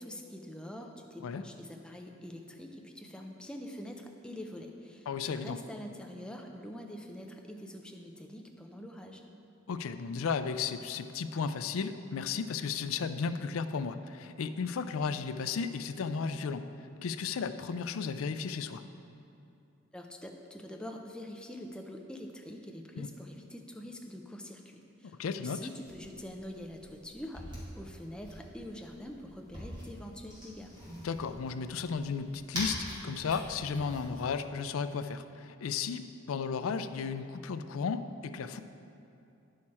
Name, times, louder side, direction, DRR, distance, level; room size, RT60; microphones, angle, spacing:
voice 1, 0.0-9.2 19.9-30.7, left 1 dB, 5° left, 2 dB, 0.5 m, -45 dB
voice 2, 5.1-5.6 9.7-16.7 17.0-18.8 23.0-23.1 25.2-25.6 31.0-38.6, left 5 dB, 90° left, 11 dB, 0.4 m, -34 dB
sound 1, 25.8-34.3, equal, 20° right, 2.1 m, -45 dB
9.6 x 6.5 x 4.3 m, 2.7 s
head